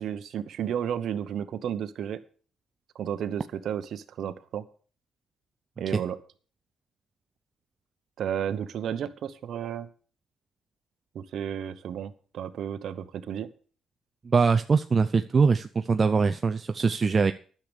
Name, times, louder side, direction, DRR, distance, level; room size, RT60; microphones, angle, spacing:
voice 1, 0.0-2.2 2.9-4.6 5.8-6.2 8.2-9.9 11.1-13.5, right 9 dB, 70° right, 11 dB, 1.0 m, -32 dB
voice 2, 14.3-17.3, right 5 dB, 35° right, 8 dB, 0.6 m, -22 dB
10.5 x 6.8 x 8.0 m, 0.42 s
cardioid pair, 90°, 0 cm